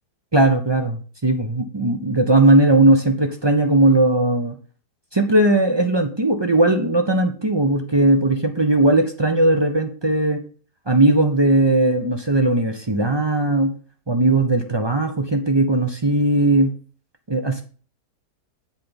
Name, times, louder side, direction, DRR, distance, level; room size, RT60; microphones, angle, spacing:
voice 1, 0.3-4.6 5.1-10.4 10.9-13.7 14.1-16.7 17.3-17.6, right 2 dB, 40° right, 5 dB, 0.3 m, -18 dB
7.9 x 4.6 x 5.2 m, 0.41 s
omnidirectional pair, 1.8 m